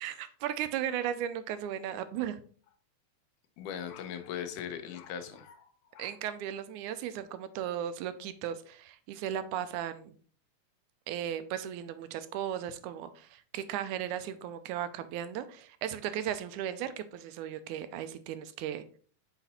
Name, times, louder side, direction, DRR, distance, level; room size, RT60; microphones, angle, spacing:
voice 1, 0.0-2.4 6.0-10.2 11.1-18.8, right 10 dB, 85° right, 11 dB, 2.0 m, -36 dB
voice 2, 3.6-6.2, left 8 dB, 90° left, 8 dB, 2.3 m, -40 dB
5.8 x 4.1 x 4.1 m, 0.43 s
omnidirectional pair, 3.5 m